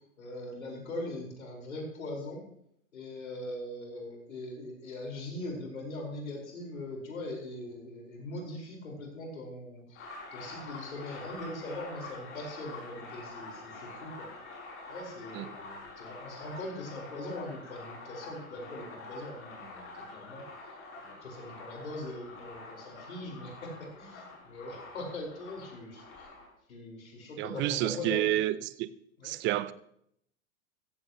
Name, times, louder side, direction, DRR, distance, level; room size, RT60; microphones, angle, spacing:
voice 1, 0.2-2.4 2.9-14.3 14.9-20.4 21.0-26.3 26.7-28.4 29.2-29.3, left 1 dB, 75° left, 5.0 m, -41 dB
sound 1, 9.9-26.5, left 3 dB, 30° left, 6.5 m, -46 dB
voice 2, 27.4-28.9 29.2-29.7, right 14 dB, 30° right, 0.6 m, -30 dB
15.5 x 15.0 x 3.1 m
hypercardioid pair, 105°, 41 cm